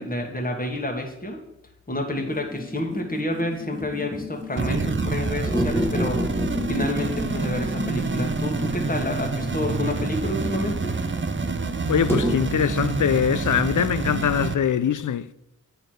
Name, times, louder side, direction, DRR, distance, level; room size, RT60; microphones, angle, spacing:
voice 1, 0.0-1.4 1.9-6.3 6.7-10.9, left 1 dB, 30° left, 1.6 m, -29 dB
sound 1, 2.2-12.3, left 1 dB, 10° left, 2.0 m, -31 dB
sound 2, 4.6-14.6, right 4 dB, 40° right, 0.6 m, -28 dB
voice 2, 11.9-15.3, left 8 dB, 75° left, 0.5 m, -22 dB
8.8 x 4.4 x 6.4 m
cardioid pair, 40°, 31 cm